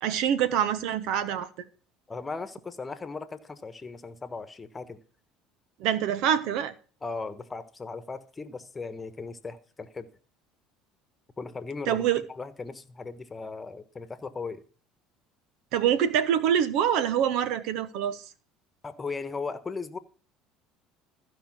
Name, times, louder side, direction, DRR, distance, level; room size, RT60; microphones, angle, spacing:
voice 1, 0.0-1.5 5.8-6.7 11.9-12.2 15.7-18.2, right 9 dB, 70° right, 0.9 m, -25 dB
voice 2, 2.1-5.0 7.0-10.1 11.4-14.6 18.8-20.0, left 4 dB, 20° left, 1.3 m, -37 dB
15.0 x 5.0 x 6.1 m
supercardioid pair, 90°, 0 cm